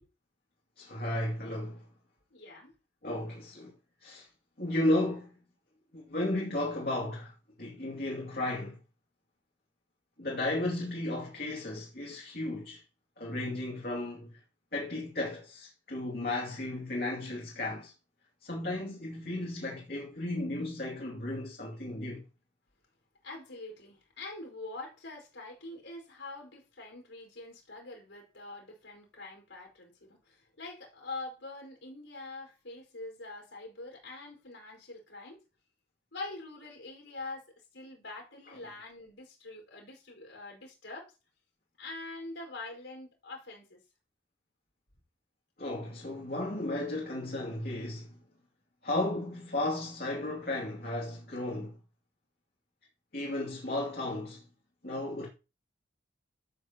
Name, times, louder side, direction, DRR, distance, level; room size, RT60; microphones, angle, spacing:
voice 1, 0.8-1.8 3.0-3.7 4.0-4.3 4.6-5.3 5.9-7.3 7.6-8.8 10.2-12.8 13.2-14.4 14.7-17.9 18.4-22.2 38.5-38.6 45.6-48.1 48.8-51.8 53.1-54.4 54.8-55.3, left 1 dB, 50° left, 2.6 m, -34 dB
voice 2, 2.3-2.7 23.2-35.4 36.1-41.1 41.8-43.8, left 2 dB, 80° left, 5.0 m, -44 dB
13.0 x 8.3 x 2.9 m
head